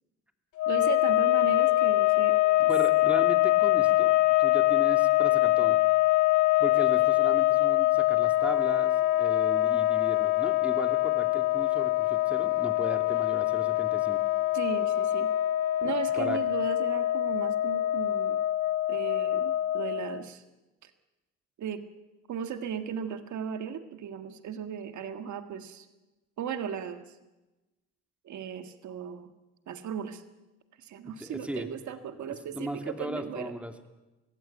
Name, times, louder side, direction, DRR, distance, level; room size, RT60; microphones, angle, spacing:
sound 1, 0.6-20.2, left 16 dB, 85° left, 1.0 m, -24 dB
voice 1, 0.7-2.7 14.5-15.3 15.8-18.4 18.9-20.4 20.8-20.9 21.6-21.8 22.3-25.9 26.4-27.1 28.2-29.3 29.7-30.2 30.8-33.5, right 8 dB, 70° right, 8 dB, 1.8 m, -36 dB
voice 2, 2.7-5.8 6.6-14.2 15.8-16.4 31.2-31.7 32.5-33.7, equal, 5° right, 6 dB, 2.6 m, -37 dB
23.5 x 16.0 x 9.1 m, 1.1 s
cardioid pair, 90°, 30 cm